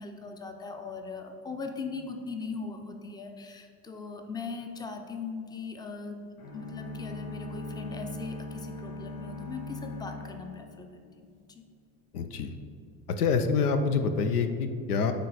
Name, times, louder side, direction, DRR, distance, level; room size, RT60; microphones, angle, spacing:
voice 1, 0.0-6.2 6.5-11.0 11.5-11.6, left 4 dB, 10° left, 5 dB, 0.5 m, -39 dB
sound 1, 6.4-11.4, left 2 dB, 70° left, 1.3 m, -40 dB
voice 2, 12.1-12.5 13.2-15.1, left 5 dB, 85° left, 8 dB, 0.6 m, -26 dB
9.2 x 3.3 x 4.0 m, 2.3 s
hypercardioid pair, 75°, 44 cm